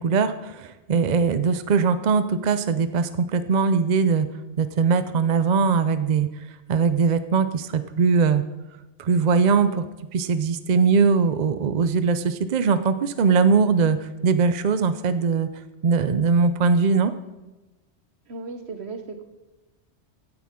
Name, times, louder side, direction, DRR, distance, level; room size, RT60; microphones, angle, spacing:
voice 1, 0.0-4.3 4.6-6.3 6.7-8.4 9.0-15.5 15.8-17.1, right 5 dB, 50° right, 11 dB, 0.6 m, -21 dB
voice 2, 18.3-19.2, right 3 dB, 75° right, 7 dB, 1.4 m, -35 dB
16.0 x 9.7 x 3.7 m, 1.1 s
omnidirectional pair, 1.1 m